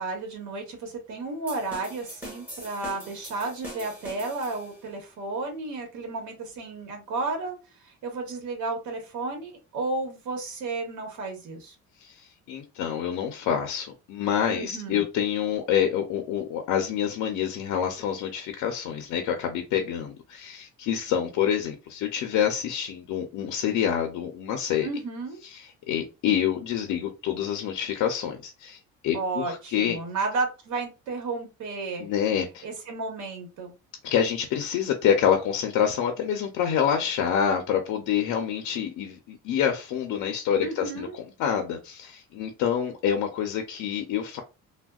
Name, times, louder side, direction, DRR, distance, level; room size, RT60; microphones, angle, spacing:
voice 1, 0.0-7.6 7.8-11.7 14.5-15.0 24.8-25.4 29.1-32.1 32.6-33.7 40.6-41.1, right 3 dB, 75° right, 3 dB, 1.1 m, -32 dB
sound 1, 1.5-4.9, equal, 5° right, 1.4 m, -43 dB
voice 2, 12.0-24.9 25.5-30.0 32.0-32.7 34.0-44.4, left 8 dB, 80° left, 4 dB, 0.6 m, -27 dB
3.4 x 2.2 x 2.3 m, 0.28 s
cardioid pair, 155°, 30 cm